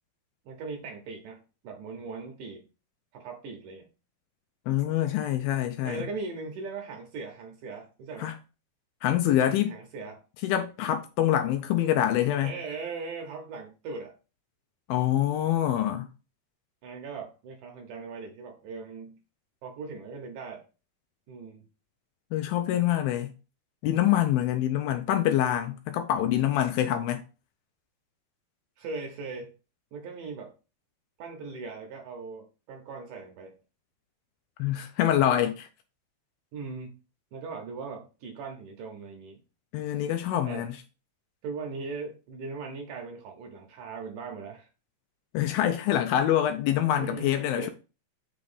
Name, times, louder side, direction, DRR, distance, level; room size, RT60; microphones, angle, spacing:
voice 1, 0.5-2.7 3.1-3.9 5.8-8.4 9.7-10.2 12.4-14.2 16.8-19.2 19.6-20.6 21.3-21.6 28.8-29.5 29.9-30.5 31.2-33.6 36.5-37.0 37.3-39.4 40.5-40.7 41.4-44.7 46.9-47.7, right 4 dB, 70° right, 2.1 m, -39 dB
voice 2, 4.7-6.0 8.2-8.3 9.0-9.8 10.4-12.6 14.9-16.1 22.3-23.3 23.8-27.2 34.6-35.7 39.7-40.7 45.3-47.7, left 11 dB, 80° left, 2.3 m, -25 dB
6.4 x 3.0 x 5.4 m
omnidirectional pair, 4.5 m